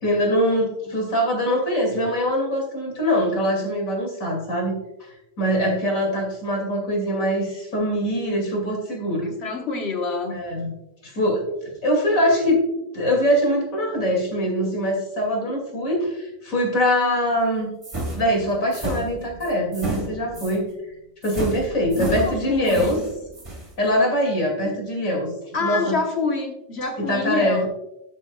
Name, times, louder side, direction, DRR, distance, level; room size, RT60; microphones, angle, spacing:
voice 1, 0.0-5.1 5.4-9.3 10.3-10.7 11.0-11.4 11.8-12.6 12.9-17.7 18.1-20.7 21.2-23.0 23.8-25.3 25.6-26.0 27.0-27.6, equal, 90° left, 0 dB, 2.9 m, -23 dB
voice 2, 9.2-10.3 21.9-23.1 25.5-27.7, left 4 dB, 55° left, 3 dB, 1.4 m, -27 dB
sound 1, 17.8-20.6 21.2-23.7, right 1 dB, 25° right, 1.7 m, -31 dB
13.0 x 6.3 x 2.3 m, 0.88 s
omnidirectional pair, 1.4 m